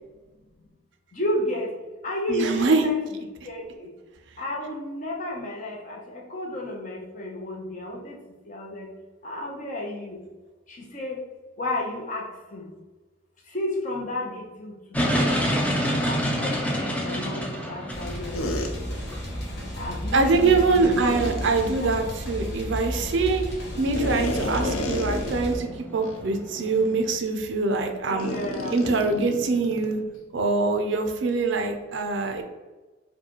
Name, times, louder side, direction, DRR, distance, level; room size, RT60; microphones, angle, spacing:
voice 1, 1.1-1.7 2.0-3.0 3.5-3.9 4.4-8.2 8.5-8.9 9.2-10.2 10.9-11.2 11.6-12.7 13.5-14.7 15.0-15.2 15.8-18.6 19.8-21.2 21.8-21.9 28.1-28.7, left 1 dB, 35° left, -1 dB, 0.7 m, -32 dB
voice 2, 2.3-2.8 20.1-23.4 23.8-28.4 28.7-30.0 30.3-32.4, right 3 dB, 55° right, 5 dB, 0.4 m, -24 dB
sound 1, 14.9-27.2, equal, 5° left, 0.4 m, -30 dB
sound 2, 17.9-25.6, equal, 50° left, 1.2 m, -33 dB
sound 3, 18.3-18.7 20.8-21.5 23.9-25.7 26.0-26.2 26.8-26.9 28.2-30.0, left 2 dB, 80° left, 0.5 m, -31 dB
4.7 x 2.2 x 2.9 m, 1.2 s
head